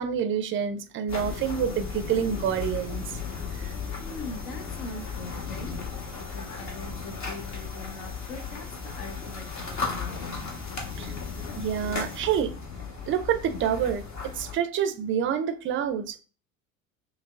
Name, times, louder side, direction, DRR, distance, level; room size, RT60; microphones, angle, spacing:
voice 1, 0.0-3.1 3.5-3.7 11.0-11.1 11.6-12.5 13.1-16.2, right 8 dB, 30° right, 0.5 m, -28 dB
sound 1, 1.1-14.6, left 5 dB, 40° left, 1.4 m, -35 dB
voice 2, 4.0-10.4, left 2 dB, 55° left, 0.9 m, -42 dB
6.0 x 2.1 x 2.4 m
hypercardioid pair, 75°, 43 cm